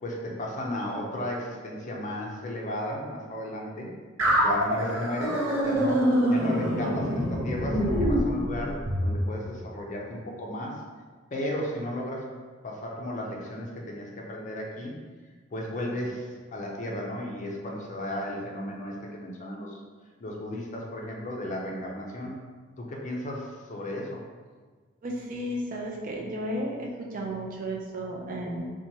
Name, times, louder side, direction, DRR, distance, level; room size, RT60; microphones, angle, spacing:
voice 1, 0.0-3.9 4.4-10.8 11.3-12.3 12.6-15.0 15.5-19.8 20.2-22.4 22.8-24.2, left 1 dB, 40° left, -1 dB, 0.4 m, -34 dB
sound 1, 4.2-9.1, equal, 90° right, 0.6 m, -25 dB
voice 2, 25.0-28.7, right 1 dB, 45° right, -1 dB, 0.4 m, -33 dB
2.8 x 2.2 x 2.8 m, 1.5 s
head